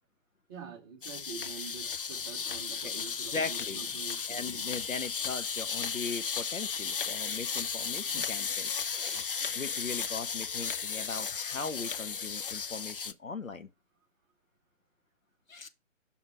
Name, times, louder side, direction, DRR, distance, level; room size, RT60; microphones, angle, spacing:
voice 1, 0.5-4.7 8.0-8.3, right 6 dB, 15° right, 0.8 m, -46 dB
sound 1, 1.0-13.1, left 6 dB, 45° left, 0.4 m, -35 dB
voice 2, 2.8-3.8 4.3-9.3 9.5-13.7 15.5-15.7, left 4 dB, 85° left, 1.1 m, -39 dB
5.4 x 4.9 x 5.1 m
figure-of-eight pair, 140°, 39 cm